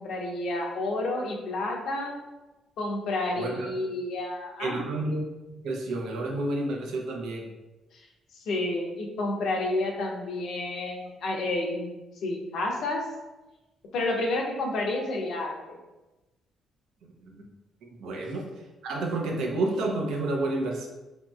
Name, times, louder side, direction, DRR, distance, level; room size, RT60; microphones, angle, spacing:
voice 1, 0.0-2.1 2.8-4.8 7.9-8.1 8.3-13.0 13.9-15.8 18.1-18.3, left 2 dB, 75° left, 0 dB, 0.5 m, -30 dB
voice 2, 3.4-3.7 4.6-7.5 17.3-17.4 17.8-18.5 18.8-20.9, right 2 dB, 85° right, 1 dB, 0.5 m, -30 dB
3.0 x 2.6 x 2.3 m, 1.1 s
cardioid pair, 90°, 0 cm